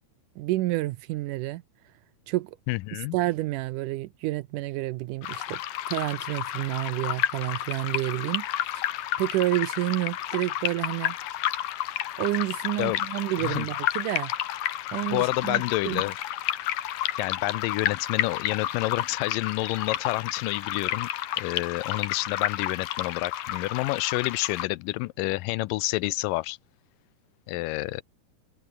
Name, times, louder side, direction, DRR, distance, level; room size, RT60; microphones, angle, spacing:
voice 1, 0.4-1.6 2.3-2.6 3.1-5.6 5.9-8.5 8.7-8.9 9.2-11.2 12.2-14.3 14.9-16.0, right 17 dB, 85° right, 1.8 m, -29 dB
voice 2, 2.7-3.2 12.8-13.0 13.4-13.7 15.1-16.1 17.2-21.1 21.4-26.6 27.5-28.0, left 20 dB, 85° left, 1.9 m, -29 dB
sound 1, 5.2-24.7, left 13 dB, 65° left, 2.7 m, -31 dB
omnidirectional pair, 4.5 m